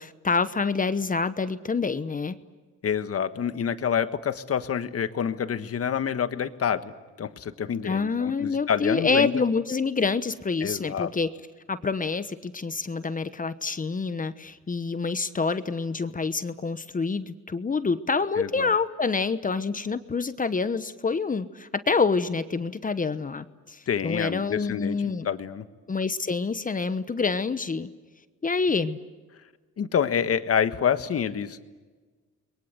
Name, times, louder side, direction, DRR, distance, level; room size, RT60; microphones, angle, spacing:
voice 1, 0.0-2.3 7.8-11.3 11.7-25.3 25.9-27.9 28.4-29.0, left 4 dB, 25° left, 12 dB, 1.1 m, -27 dB
voice 2, 2.8-6.9 7.2-9.4 10.6-11.1 18.4-18.7 23.9-25.7 29.8-31.7, left 8 dB, 50° left, 10 dB, 1.5 m, -27 dB
29.5 x 22.0 x 7.9 m, 1.3 s
cardioid pair, 90°, 30 cm